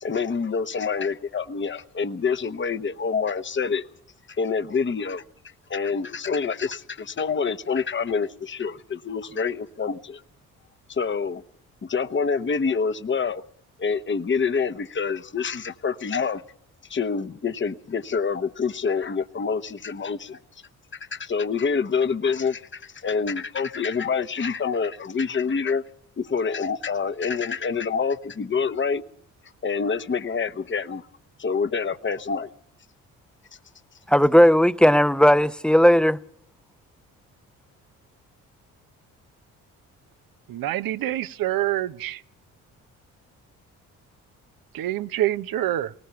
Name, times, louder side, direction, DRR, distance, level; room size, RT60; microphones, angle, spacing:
voice 1, 0.0-3.8 4.3-5.2 5.7-10.2 10.9-11.4 11.8-13.4 13.8-16.4 16.9-20.4 20.9-25.8 26.2-29.0 29.6-31.1 31.4-32.5, left 5 dB, 30° left, 1.1 m, -26 dB
voice 2, 34.1-36.2, equal, ahead, 0.8 m, -16 dB
voice 3, 40.5-42.2 44.7-45.9, right 14 dB, 65° right, 0.9 m, -26 dB
19.5 x 19.0 x 7.0 m
hypercardioid pair, 50°, 38 cm